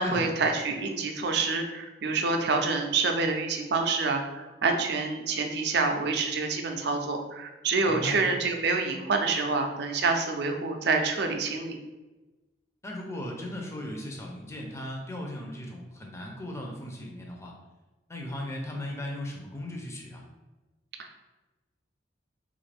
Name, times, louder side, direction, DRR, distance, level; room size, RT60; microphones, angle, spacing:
voice 1, 0.0-11.8 21.0-21.2, right 4 dB, 65° right, 4 dB, 0.5 m, -27 dB
voice 2, 7.9-8.2 12.8-17.5 18.1-20.2, left 1 dB, 15° left, 0 dB, 0.5 m, -37 dB
3.2 x 2.5 x 3.3 m, 1.1 s
head